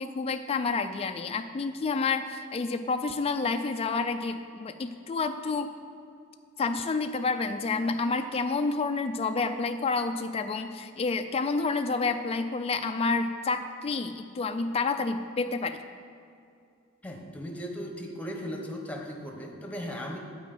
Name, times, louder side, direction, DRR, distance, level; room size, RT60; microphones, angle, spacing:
voice 1, 0.0-5.7 6.6-15.8, left 4 dB, 30° left, 7 dB, 0.3 m, -29 dB
voice 2, 17.0-20.2, equal, 5° left, 1 dB, 1.0 m, -37 dB
8.3 x 4.9 x 7.6 m, 2.5 s
head